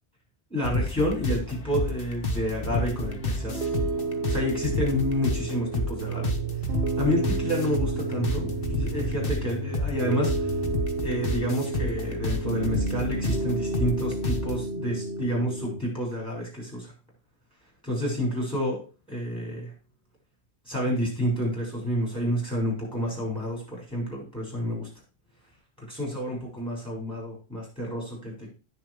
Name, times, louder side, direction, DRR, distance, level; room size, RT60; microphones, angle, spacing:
voice 1, 0.5-3.7 4.3-6.3 7.0-10.5 11.0-16.9 17.8-18.8 19.1-19.7 20.7-24.9 25.9-28.5, equal, 5° left, -3 dB, 6.4 m, -29 dB
sound 1, 0.6-14.6, left 2 dB, 55° left, 1.5 m, -31 dB
Piano, 2.7-15.8, right 3 dB, 80° right, 1.5 m, -32 dB
9.6 x 7.2 x 4.9 m, 0.34 s
omnidirectional pair, 1.1 m